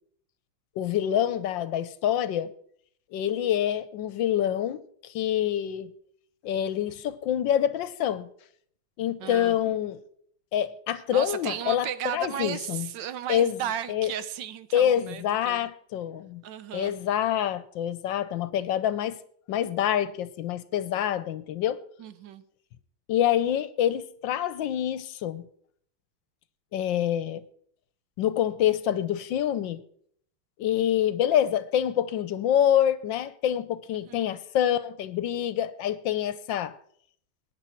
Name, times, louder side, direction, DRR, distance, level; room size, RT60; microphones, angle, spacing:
voice 1, 0.8-2.5 3.1-5.9 6.4-8.3 9.0-10.0 10.5-12.9 13.3-13.6 13.9-14.1 14.7-16.4 16.7-19.2 19.5-21.8 23.1-25.5 26.7-27.4 28.2-29.8 30.6-36.7, left 10 dB, 75° left, 1.4 m, -26 dB
voice 2, 9.2-9.6 10.9-15.7 16.4-16.9 22.0-22.4 34.0-34.3, right 10 dB, 70° right, 1.3 m, -35 dB
21.5 x 9.8 x 4.5 m
omnidirectional pair, 2.2 m